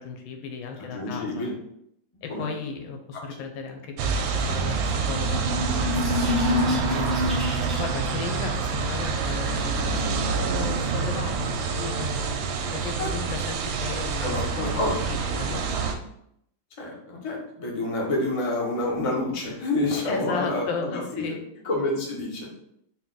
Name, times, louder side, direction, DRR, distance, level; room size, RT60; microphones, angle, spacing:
voice 1, 0.0-1.5 2.2-7.2 7.8-12.1 12.7-14.7 15.0-15.7 20.0-21.4, left 5 dB, 90° left, 4 dB, 1.4 m, -35 dB
voice 2, 0.8-1.5 2.3-2.5 3.1-3.2 13.0-13.1 14.2-15.3 16.8-21.4 21.6-22.5, left 2 dB, 60° left, -2 dB, 0.3 m, -28 dB
sound 1, 4.0-15.9, right 5 dB, 85° right, 1.3 m, -27 dB
sound 2, 5.1-8.1, left 2 dB, ahead, 0.7 m, -27 dB
4.2 x 2.2 x 3.8 m, 0.72 s
omnidirectional pair, 2.1 m